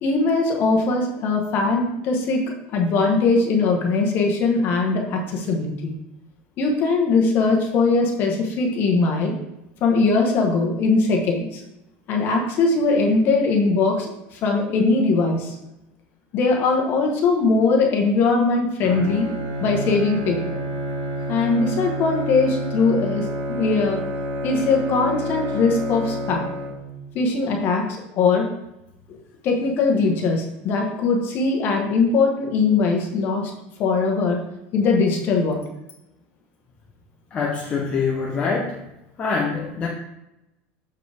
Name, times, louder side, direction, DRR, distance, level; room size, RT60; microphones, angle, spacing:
voice 1, 0.0-2.4 2.7-5.9 6.6-9.4 9.8-11.6 12.1-15.5 16.3-19.3 19.6-20.6 21.3-24.0 24.4-26.5 27.1-28.5 29.4-33.5 33.8-35.6, left 4 dB, 35° left, 2 dB, 1.1 m, -21 dB
Bowed string instrument, 18.8-27.1, right 1 dB, 60° right, 1.6 m, -29 dB
voice 2, 37.3-38.8 39.2-39.9, left 5 dB, 20° left, -2 dB, 0.6 m, -24 dB
6.4 x 4.9 x 3.4 m, 0.90 s
cardioid pair, 170°, 6 cm